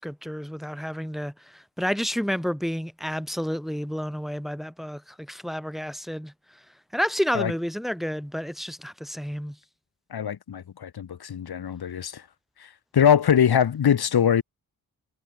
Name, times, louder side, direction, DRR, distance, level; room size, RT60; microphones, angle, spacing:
voice 1, 0.0-6.3 6.9-9.6, equal, ahead, 1.8 m, -30 dB
voice 2, 10.1-12.2 12.9-14.4, left 8 dB, 85° left, 2.0 m, -22 dB
wide cardioid pair, 170°, 37 cm